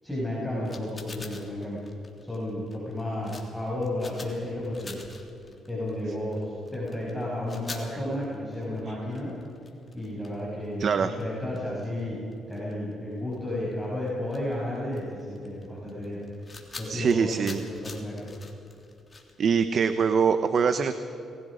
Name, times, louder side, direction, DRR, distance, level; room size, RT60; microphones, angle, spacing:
voice 1, 0.0-1.8 2.2-5.0 5.7-9.3 9.9-16.2 16.8-18.2, left 1 dB, ahead, -7 dB, 6.7 m, -32 dB
sound 1, 0.7-12.9 13.2-13.4 13.7-19.9, left 3 dB, 30° left, 3.4 m, -46 dB
voice 2, 10.8-11.2 16.9-17.6 19.4-20.9, right 6 dB, 55° right, 10 dB, 1.0 m, -23 dB
29.5 x 20.5 x 5.2 m, 2.8 s
cardioid pair, 90°, 0 cm